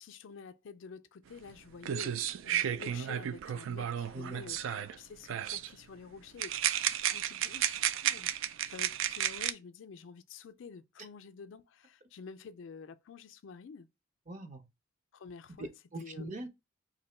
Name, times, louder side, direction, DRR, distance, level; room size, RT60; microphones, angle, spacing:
voice 1, 0.0-6.6 6.9-13.9 15.1-15.7 16.0-16.3, left 5 dB, 70° left, 0.4 m, -49 dB
sound 1, 1.5-1.6 1.8-5.0 5.3-5.7 6.4-9.5, right 10 dB, 75° right, 0.3 m, -33 dB
voice 2, 4.1-4.5 14.3-14.6 15.6-16.5, right 2 dB, 40° right, 0.7 m, -42 dB
2.9 x 2.6 x 4.3 m
head